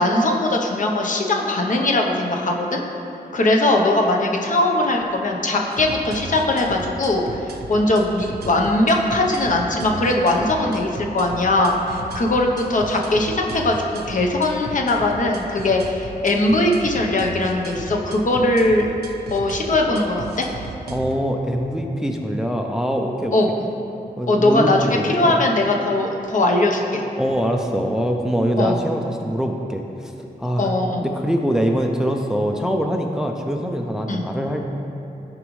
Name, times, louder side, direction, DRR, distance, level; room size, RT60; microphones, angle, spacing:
voice 1, 0.0-2.8 3.3-18.9 19.3-20.5 23.3-23.5 24.3-27.0 28.6-28.8 30.6-31.0 34.1-34.3, left 2 dB, 55° left, 1 dB, 0.8 m, -20 dB
sound 1, 5.7-21.1, right 3 dB, 80° right, 0.8 m, -35 dB
voice 2, 20.9-23.4 24.2-25.4 27.2-30.1 30.4-34.7, equal, 5° right, 2 dB, 0.4 m, -23 dB
14.5 x 5.1 x 3.2 m, 2.9 s
wide cardioid pair, 160°, 16 cm